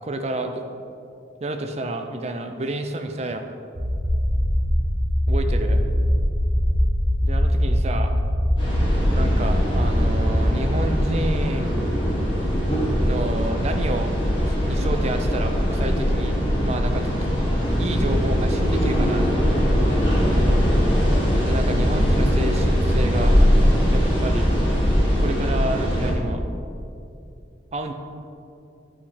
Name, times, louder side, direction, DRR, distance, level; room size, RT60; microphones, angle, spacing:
voice 1, 0.0-0.6 1.4-3.5 5.3-5.8 7.2-8.2 9.1-11.7 13.0-14.1 14.4-16.4 16.6-17.2 17.8-19.5 21.5-23.4 23.9-24.5 25.2-26.5 27.7-27.9, right 2 dB, 35° right, 6 dB, 0.5 m, -29 dB
sound 1, 3.8-10.4, equal, 90° right, 1.6 m, -22 dB
sound 2, 8.6-26.1, equal, 25° left, 1.7 m, -21 dB
8.6 x 5.0 x 4.2 m, 2.6 s
head